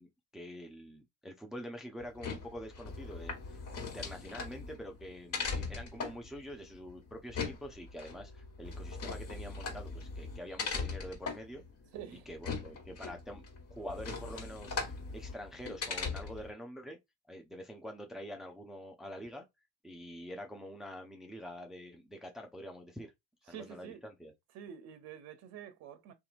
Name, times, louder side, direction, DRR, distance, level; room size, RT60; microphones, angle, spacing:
voice 1, 0.0-11.6 12.3-17.0 17.3-19.5 19.8-23.1 23.5-24.3, equal, ahead, 0.5 m, -46 dB
sound 1, 2.0-16.5, left 4 dB, 45° left, 1.5 m, -40 dB
voice 2, 11.9-12.3 23.5-24.0 24.5-26.1, right 9 dB, 45° right, 0.7 m, -47 dB
2.8 x 2.5 x 2.4 m
hypercardioid pair, 70°, 35 cm